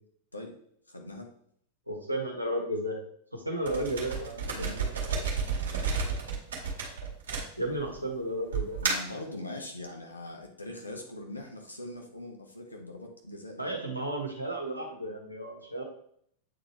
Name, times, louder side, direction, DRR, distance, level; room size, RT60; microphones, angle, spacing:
voice 1, 0.9-1.3 4.5-4.9 8.8-13.8, left 2 dB, 80° left, 1 dB, 1.3 m, -42 dB
voice 2, 1.9-3.0 3.3-4.7 7.6-8.8 13.6-15.8, right 1 dB, 90° right, 1 dB, 1.4 m, -33 dB
sound 1, 3.6-8.0 8.5-9.2, right 5 dB, 65° right, 1.9 m, -31 dB
8.6 x 4.0 x 3.3 m, 0.66 s
figure-of-eight pair, 90°, 0 cm